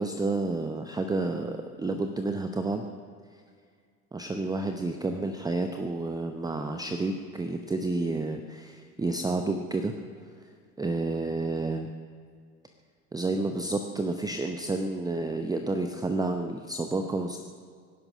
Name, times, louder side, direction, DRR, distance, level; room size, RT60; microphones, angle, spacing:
voice 1, 0.0-2.9 4.1-9.9 10.8-11.9 13.1-17.4, right 2 dB, 10° right, 6 dB, 0.8 m, -30 dB
24.5 x 11.0 x 5.4 m, 2.1 s
figure-of-eight pair, 70°, 45 cm